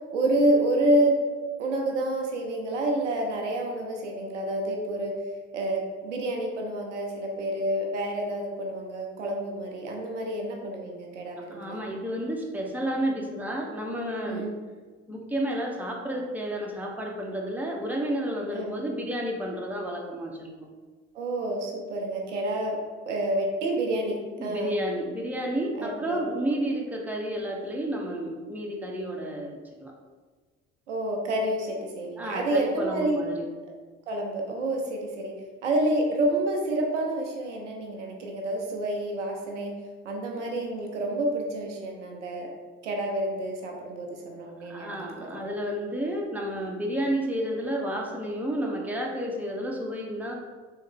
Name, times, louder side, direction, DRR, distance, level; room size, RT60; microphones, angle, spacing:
voice 1, 0.1-1.2 1.6-5.2 5.5-11.8 14.3-14.5 18.5-18.7 21.1-22.8 23.1-24.7 25.8-26.2 30.9-33.2 34.1-35.3 35.6-39.7 40.0-42.5 42.8-44.9 45.2-45.3, right 1 dB, 85° right, 1 dB, 0.6 m, -28 dB
voice 2, 11.5-14.5 15.1-20.5 24.4-29.9 32.2-33.5 44.6-50.3, right 1 dB, 5° right, -1 dB, 0.7 m, -31 dB
3.5 x 3.1 x 3.5 m, 1.4 s
figure-of-eight pair, 45°, 35 cm